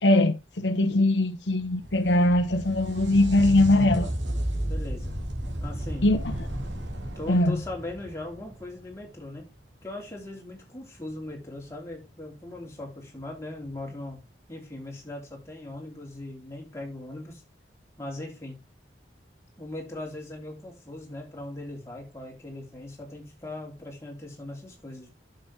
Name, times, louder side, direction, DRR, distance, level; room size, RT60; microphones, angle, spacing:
voice 1, 0.0-4.1 6.0-6.2 7.3-7.5, left 1 dB, 80° left, 1.1 m, -21 dB
sound 1, 1.6-9.2 12.5-12.6 13.7-13.8, right 1 dB, 90° right, 2.9 m, -33 dB
voice 2, 4.7-5.2 5.6-6.1 7.1-9.5 9.8-14.2 14.5-17.4 18.0-18.6 19.6-25.1, left 2 dB, 15° left, 3.1 m, -39 dB
10.0 x 7.1 x 3.4 m
head